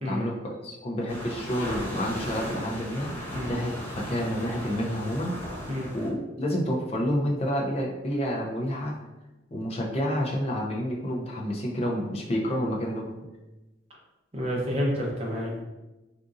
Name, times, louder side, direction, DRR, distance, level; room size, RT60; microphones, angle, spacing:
voice 1, 0.0-3.1 3.5-5.3 5.9-8.9 9.5-13.1, equal, 35° left, -2 dB, 0.6 m, -29 dB
sound 1, 1.1-6.1, equal, 10° left, 0.9 m, -37 dB
voice 2, 14.3-15.6, equal, 35° right, -3 dB, 0.8 m, -29 dB
3.6 x 2.6 x 2.5 m, 1.0 s
head